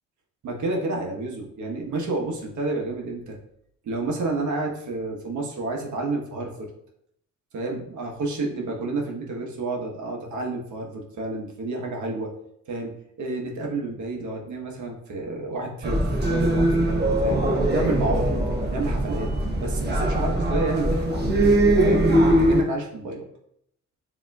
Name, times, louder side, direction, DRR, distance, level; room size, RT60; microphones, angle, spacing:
voice 1, 0.4-3.4 3.8-6.7 7.5-12.3 12.7-12.9 13.2-18.4 18.7-19.3 19.6-23.2, right 2 dB, 75° right, 0 dB, 1.2 m, -30 dB
sound 1, 15.8-22.6, right 1 dB, 35° right, 1.0 m, -21 dB
7.1 x 2.9 x 2.3 m, 0.74 s
cardioid pair, 90°, 30 cm